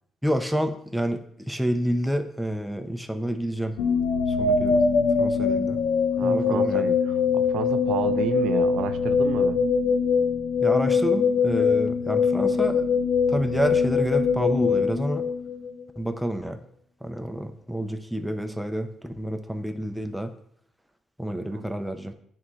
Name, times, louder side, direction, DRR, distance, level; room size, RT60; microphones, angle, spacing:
voice 1, 0.2-3.8 4.3-4.8 5.2-5.8 6.2-6.9 10.6-12.8 13.3-15.2 16.0-16.6 17.0-20.3 21.2-22.1, equal, ahead, 6 dB, 0.6 m, -28 dB
sound 1, 3.8-15.8, left 5 dB, 85° left, 0.7 m, -23 dB
voice 2, 6.2-9.6 21.5-21.7, right 9 dB, 85° right, 9 dB, 0.4 m, -32 dB
10.0 x 3.6 x 3.2 m, 0.69 s
cardioid pair, 90°, 0 cm